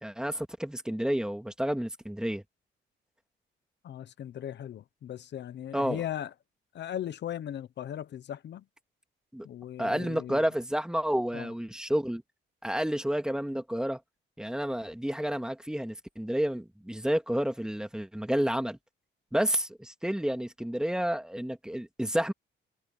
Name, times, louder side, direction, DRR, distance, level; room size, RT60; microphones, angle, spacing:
voice 1, 0.0-2.4 5.7-6.0 9.3-9.5 9.8-12.2 12.6-14.0 14.4-18.8 19.3-22.3, equal, 5° right, 2.4 m, -30 dB
voice 2, 3.8-6.3 6.7-8.6 9.4-10.4 11.3-11.5, left 10 dB, 60° left, 0.9 m, -38 dB
cardioid pair, 90°, 20 cm